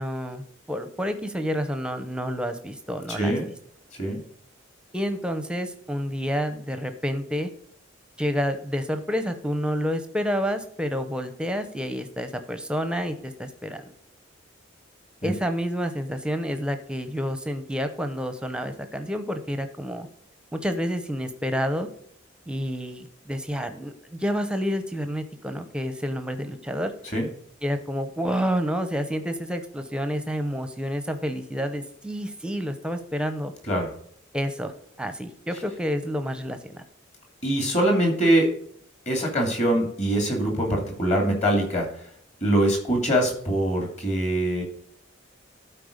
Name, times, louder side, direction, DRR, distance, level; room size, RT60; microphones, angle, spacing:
voice 1, 0.0-3.3 4.9-7.5 8.2-13.9 15.2-20.1 20.5-21.9 22.5-26.9 27.6-33.5 34.3-34.7 35.0-36.8, equal, 5° right, 8 dB, 0.7 m, -29 dB
voice 2, 3.1-3.5 4.0-4.2 15.2-15.3 27.1-27.3 33.7-33.9 37.4-38.5 39.1-41.9 42.4-44.6, right 1 dB, 35° left, 1 dB, 2.6 m, -23 dB
12.0 x 4.6 x 5.1 m, 0.65 s
head